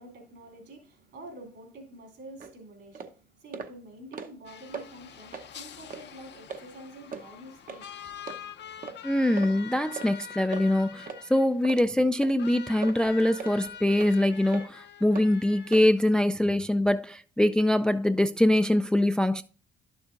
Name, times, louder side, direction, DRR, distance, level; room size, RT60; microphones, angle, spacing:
voice 1, 0.0-8.1, right 1 dB, 65° right, 3.2 m, -48 dB
sound 1, 2.4-2.5 2.9-3.1 3.5-3.7 4.0-4.4 4.7-4.9 5.3-5.5 5.9-6.0 6.5-6.6 7.1-7.3 7.7-7.8 8.3-8.4 8.8-9.0 9.4-9.5 10.0-10.1 10.5-10.6 11.1-11.2 11.6-11.8 12.2-12.4 12.8-13.0 13.4-13.6 14.0-14.1 14.5-14.7 15.1-15.3 15.7-15.9, right 5 dB, 45° right, 0.9 m, -38 dB
sound 2, 4.4-15.9, left 8 dB, 60° left, 0.8 m, -45 dB
voice 2, 9.0-19.4, left 1 dB, 5° left, 0.3 m, -23 dB
11.5 x 7.1 x 2.5 m
cardioid pair, 90°, 20 cm